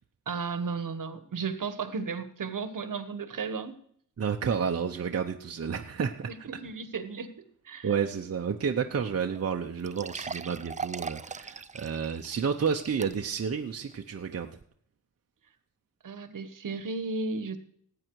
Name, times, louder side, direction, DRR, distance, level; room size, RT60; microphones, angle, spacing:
voice 1, 0.3-3.8 6.3-8.0 16.0-17.6, right 4 dB, 65° right, 11 dB, 1.3 m, -34 dB
voice 2, 4.2-6.3 7.8-14.5, right 6 dB, 45° right, 3 dB, 0.8 m, -30 dB
sound 1, 9.0-9.1 9.4-9.5 9.8-13.5 13.9-14.0 14.6-14.7, right 5 dB, 20° right, 0.4 m, -40 dB
17.5 x 8.9 x 4.7 m, 0.65 s
wide cardioid pair, 180°, 34 cm